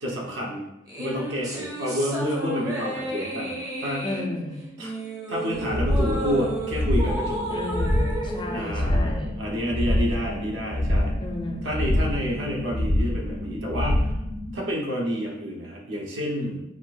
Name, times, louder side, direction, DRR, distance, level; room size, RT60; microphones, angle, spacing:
voice 1, 0.0-0.6 1.0-3.5 3.8-4.1 4.8-4.9 5.3-7.4 8.5-11.1 11.6-14.1 14.5-16.6, equal, 75° right, -2 dB, 1.1 m, -29 dB
sound 1, 0.9-9.5, right 1 dB, 15° right, 0.7 m, -33 dB
voice 2, 4.0-4.7 7.5-9.4 11.2-11.8, left 2 dB, 25° left, 2 dB, 0.4 m, -33 dB
sound 2, 5.5-14.5, left 1 dB, 70° left, 0.7 m, -26 dB
6.8 x 2.5 x 2.5 m, 0.90 s
head